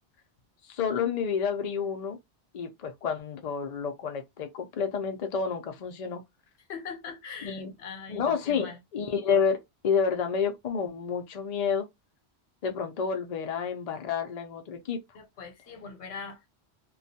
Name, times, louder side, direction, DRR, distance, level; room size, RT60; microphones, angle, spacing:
voice 1, 0.6-2.2 2.5-6.2 7.4-7.7 8.1-11.9 12.6-15.0, left 6 dB, 55° left, 0.5 m, -29 dB
voice 2, 6.7-8.8 15.1-16.5, left 5 dB, 80° left, 1.0 m, -41 dB
2.3 x 2.2 x 2.6 m
omnidirectional pair, 1.1 m